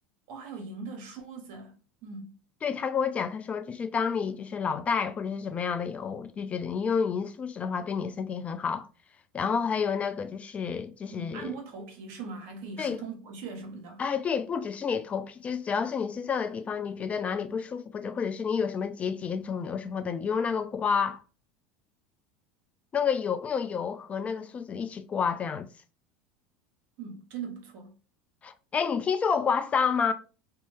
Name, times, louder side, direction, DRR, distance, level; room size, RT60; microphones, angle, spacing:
voice 1, 0.3-1.7 2.0-2.3 11.1-14.0 27.0-27.9, right 4 dB, 60° right, 1.0 m, -40 dB
voice 2, 2.6-8.9 9.3-11.6 12.8-13.0 14.0-21.2 22.9-25.7 28.4-30.1, left 6 dB, 30° left, 0.3 m, -29 dB
2.7 x 2.2 x 3.1 m
hypercardioid pair, 90°, 5 cm